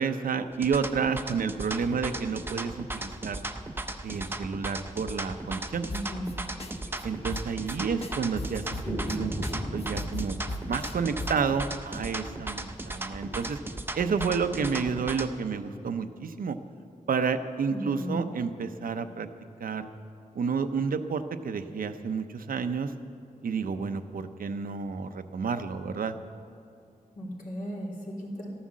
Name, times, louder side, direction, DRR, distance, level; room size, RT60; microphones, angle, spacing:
voice 1, 0.0-3.4 4.0-5.9 7.0-9.3 9.7-10.4 10.7-13.6 14.0-16.6 17.1-19.3 19.6-19.9 20.3-22.9 23.4-26.2, right 5 dB, 80° right, 9 dB, 0.7 m, -30 dB
sound 1, 0.5-15.3, right 2 dB, 15° right, 0.7 m, -36 dB
voice 2, 5.9-6.3 17.7-18.2 27.2-28.5, equal, 70° left, -3 dB, 3.1 m, -35 dB
sound 2, 5.9-6.3 6.6-6.7 7.0-7.1 7.3-9.2 9.4-9.5 9.8-11.5, left 2 dB, 45° left, 1.2 m, -36 dB
sound 3, 6.1-6.2 6.5-6.6 6.9-7.0 7.6-8.1 8.8-13.6, left 1 dB, 15° left, 1.5 m, -39 dB
13.0 x 11.5 x 7.4 m, 2.5 s
wide cardioid pair, 130°, 14 cm